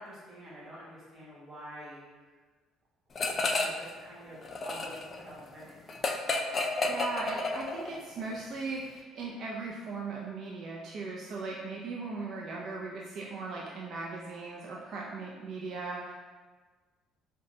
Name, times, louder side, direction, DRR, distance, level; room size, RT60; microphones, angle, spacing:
voice 1, 0.0-2.4 3.5-5.8, equal, 25° right, -8 dB, 1.5 m, -47 dB
sound 1, 3.2-3.9 4.2-8.0, left 3 dB, 35° left, 0.3 m, -31 dB
voice 2, 6.4-16.1, right 3 dB, 55° right, -3 dB, 0.4 m, -38 dB
4.9 x 2.2 x 2.7 m, 1.4 s
cardioid pair, 110°, 0 cm